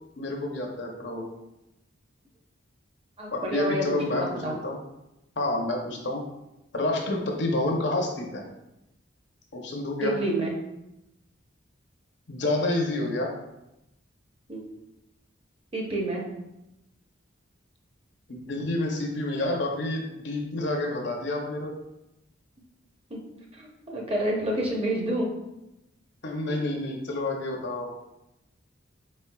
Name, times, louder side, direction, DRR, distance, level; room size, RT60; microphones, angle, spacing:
voice 1, 0.2-1.3 3.3-4.8 5.4-6.2 6.7-8.4 9.5-10.1 12.3-13.3 18.3-21.7 26.2-27.9, left 2 dB, 60° left, 1 dB, 0.7 m, -29 dB
voice 2, 3.2-4.5 10.0-10.5 14.5-14.6 15.7-16.3 23.1-23.2 23.5-25.3, right 1 dB, 30° right, -1 dB, 0.7 m, -28 dB
4.3 x 4.1 x 2.2 m, 0.90 s
head